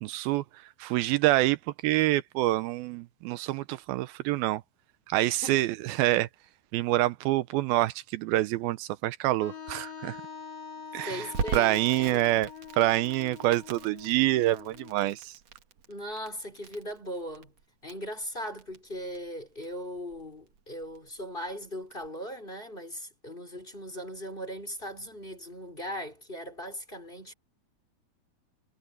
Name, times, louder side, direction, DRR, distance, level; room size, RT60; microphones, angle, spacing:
voice 1, 0.0-1.6 1.8-4.6 5.1-6.3 6.7-10.2 10.9-12.5 12.8-15.4, right 16 dB, 85° right, 2.5 m, -26 dB
voice 2, 5.2-5.7 11.0-12.3 15.9-17.5 17.8-27.3, equal, 15° left, 4.1 m, -39 dB
Wind instrument woodwind instrument, 9.4-15.2, left 6 dB, 65° left, 3.9 m, -44 dB
Crackle, 11.3-22.1, right 6 dB, 50° right, 2.5 m, -41 dB
omnidirectional pair, 4.3 m